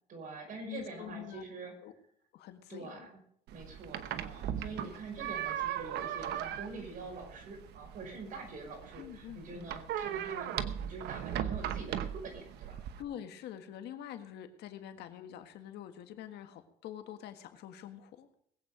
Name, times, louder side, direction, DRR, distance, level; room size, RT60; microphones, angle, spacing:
voice 1, 0.1-1.7 2.7-3.2 3.5-12.8, right 3 dB, 55° right, 2 dB, 5.7 m, -45 dB
voice 2, 0.7-1.4 1.8-1.9 2.3-3.1 9.0-9.7 13.0-18.3, left 10 dB, 80° left, 7 dB, 1.6 m, -46 dB
sound 1, 3.5-13.0, right 10 dB, 80° right, 1.1 m, -38 dB
20.5 x 8.4 x 5.0 m, 0.66 s
cardioid pair, 110°, 17 cm